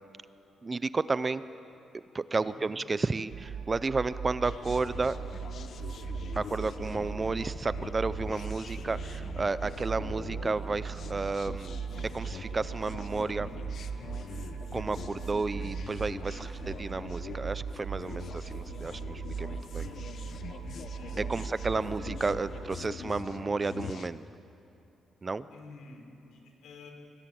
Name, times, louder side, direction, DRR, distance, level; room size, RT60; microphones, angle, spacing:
voice 1, 0.6-1.4 2.1-5.2 6.4-11.8 12.1-13.5 14.3-14.4 14.7-19.9 21.2-24.2 25.2-25.5, right 3 dB, 20° right, 15 dB, 0.5 m, -32 dB
voice 2, 2.4-2.7 20.9-21.2 25.5-26.9, left 3 dB, 85° left, 3 dB, 4.7 m, -50 dB
sound 1, 3.3-22.8, right 7 dB, 55° right, 1.2 m, -39 dB
sound 2, 4.4-24.1, left 7 dB, 50° left, 1.0 m, -44 dB
26.0 x 20.0 x 9.3 m, 2.9 s
cardioid pair, 155°, 0 cm